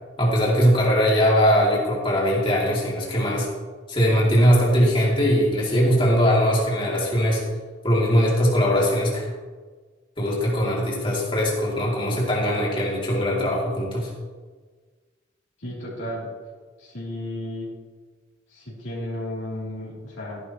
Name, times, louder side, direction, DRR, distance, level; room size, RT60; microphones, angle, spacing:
voice 1, 0.2-3.5 3.9-7.4 7.8-9.2 10.2-14.1, equal, 25° left, -4 dB, 2.8 m, -20 dB
voice 2, 15.6-16.3 16.8-17.7 18.5-20.4, left 1 dB, 80° left, -6 dB, 3.2 m, -33 dB
13.5 x 11.0 x 3.1 m, 1.4 s
head